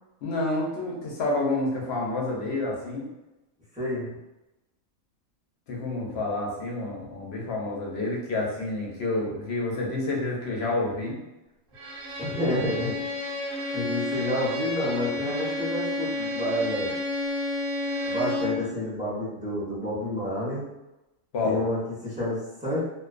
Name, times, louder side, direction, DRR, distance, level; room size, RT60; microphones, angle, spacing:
voice 1, 0.2-3.0 5.7-11.2 21.3-21.6, left 2 dB, 60° left, -2 dB, 0.8 m, -29 dB
voice 2, 3.7-4.1 12.2-13.0 13.7-16.9 18.1-20.6 21.4-22.8, left 1 dB, 10° right, -10 dB, 0.6 m, -29 dB
Bowed string instrument, 11.7-18.7, left 2 dB, 75° right, 1.0 m, -31 dB
2.5 x 2.2 x 2.4 m, 0.97 s
omnidirectional pair, 1.4 m